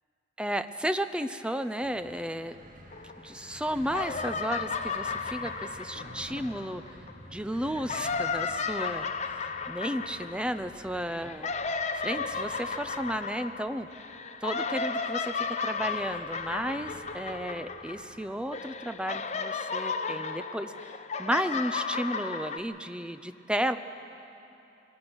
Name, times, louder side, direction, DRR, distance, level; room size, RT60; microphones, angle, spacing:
voice 1, 0.4-2.6 3.2-6.8 7.3-9.1 9.7-11.5 11.9-13.9 14.4-20.7 21.2-23.8, equal, 5° right, 10 dB, 0.6 m, -33 dB
sound 1, 1.8-19.1, right 1 dB, 45° right, 1.4 m, -51 dB
sound 2, 2.9-3.6 3.8-7.1 7.7-18.2 18.5-22.6, left 5 dB, 40° left, 0.8 m, -34 dB
24.5 x 18.5 x 6.2 m, 2.8 s
head